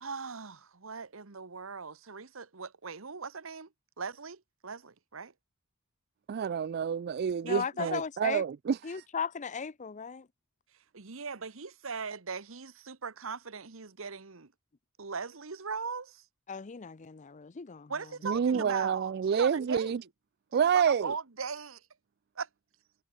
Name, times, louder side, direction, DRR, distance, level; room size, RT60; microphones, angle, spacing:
voice 1, 0.0-3.7 4.0-5.3 7.4-7.9 10.9-14.5 15.0-16.2 17.9-19.9 20.6-21.8 22.4-22.5, right 5 dB, 70° right, 1.3 m, -39 dB
voice 2, 6.3-9.0 18.2-20.0 20.5-21.1, right 7 dB, 50° right, 0.3 m, -28 dB
voice 3, 7.4-8.4 8.8-10.3 16.5-17.9 18.5-18.7, left 6 dB, 35° left, 0.6 m, -36 dB
head